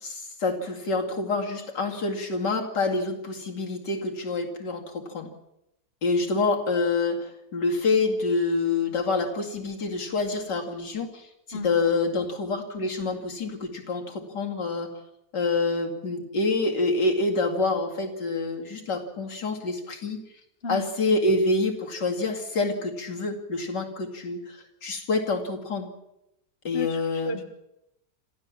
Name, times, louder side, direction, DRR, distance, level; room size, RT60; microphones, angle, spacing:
voice 1, 0.0-5.3 6.0-14.9 15.3-20.2 20.7-25.9 26.6-27.4, left 3 dB, 70° left, 1 dB, 3.0 m, -27 dB
voice 2, 26.7-27.4, left 1 dB, 35° left, 5 dB, 1.7 m, -34 dB
26.5 x 14.5 x 7.4 m, 0.87 s
omnidirectional pair, 1.9 m